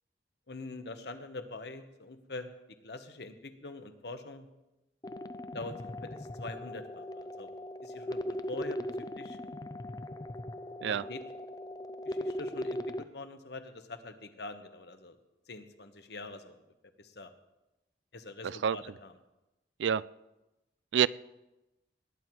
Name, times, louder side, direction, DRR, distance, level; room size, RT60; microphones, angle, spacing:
voice 1, 0.5-2.5 2.8-4.5 5.5-7.5 7.8-8.9 9.2-9.4 10.8-11.2 12.0-15.2 15.5-16.6 17.0-17.3 18.1-19.1, left 2 dB, 65° left, 8 dB, 1.1 m, -44 dB
sound 1, 5.0-13.0, left 1 dB, 20° left, 0.4 m, -39 dB
voice 2, 18.4-18.8 19.8-20.0 20.9-21.1, right 8 dB, 90° right, 20 dB, 0.4 m, -27 dB
19.0 x 9.4 x 4.7 m, 0.99 s
head